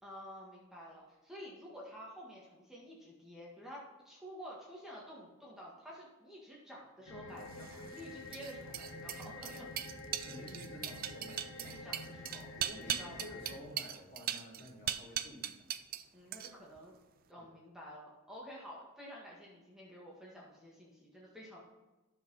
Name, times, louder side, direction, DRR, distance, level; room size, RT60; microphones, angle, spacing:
voice 1, 0.0-3.8 4.0-9.7 11.5-12.5 12.8-13.2 13.5-13.7 16.1-17.0 17.3-21.6, equal, ahead, -5 dB, 1.7 m, -50 dB
sound 1, 7.1-13.6, left 2 dB, 75° left, 1.7 m, -48 dB
sound 2, 7.5-16.0 16.3-16.8, right 10 dB, 45° right, 0.4 m, -39 dB
voice 2, 10.2-11.8 12.6-15.6 17.4-17.5, equal, 50° left, -5 dB, 3.2 m, -51 dB
10.5 x 7.0 x 4.0 m, 1.1 s
head